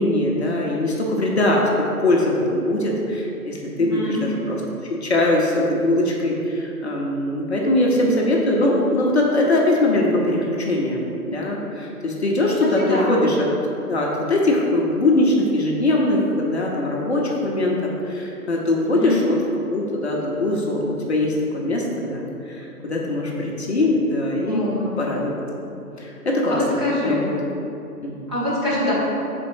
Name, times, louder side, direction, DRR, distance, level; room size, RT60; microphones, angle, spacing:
voice 1, 0.0-4.6 5.0-11.0 11.3-13.5 13.9-19.4 19.7-24.7 25.0-26.6 27.0-27.3 28.0-28.3, left 1 dB, 45° left, -3 dB, 0.7 m, -21 dB
voice 2, 3.7-4.2 12.8-13.1 18.9-19.2 24.4-24.9 26.5-27.3 28.3-29.0, left 1 dB, 20° right, -11 dB, 0.9 m, -25 dB
5.0 x 4.2 x 4.8 m, 2.9 s
hypercardioid pair, 165°, 46 cm